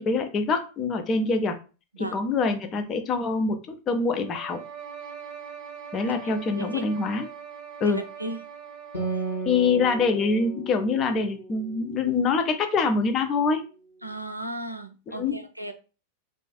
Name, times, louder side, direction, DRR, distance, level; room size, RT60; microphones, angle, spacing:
voice 1, 0.0-1.6 2.0-3.6 3.9-4.6 5.9-7.3 7.8-8.0 9.5-13.6 15.2-15.4, left 4 dB, 30° left, 6 dB, 0.4 m, -25 dB
voice 2, 1.9-2.2 6.0-6.8 7.8-8.4 9.1-9.2 14.0-15.7, right 1 dB, 90° right, 6 dB, 0.3 m, -35 dB
sound 1, 4.2-9.6, right 7 dB, 40° right, 0.9 m, -42 dB
Acoustic guitar, 8.9-12.7, right 3 dB, 75° left, 0.8 m, -35 dB
2.4 x 2.3 x 2.3 m, 0.33 s
figure-of-eight pair, 90°, 0 cm